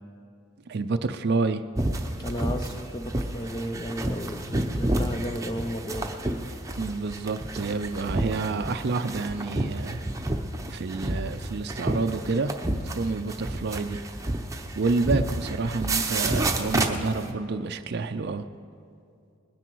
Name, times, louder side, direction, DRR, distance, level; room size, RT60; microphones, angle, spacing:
voice 1, 0.7-1.6 6.8-10.0 10.7-14.0 14.8-18.4, right 3 dB, 50° right, 8 dB, 0.4 m, -29 dB
sound 1, 1.8-17.3, right 2 dB, 15° right, 0.7 m, -30 dB
voice 2, 2.2-6.1, equal, 20° left, 5 dB, 0.5 m, -33 dB
20.0 x 10.0 x 4.6 m, 2.4 s
head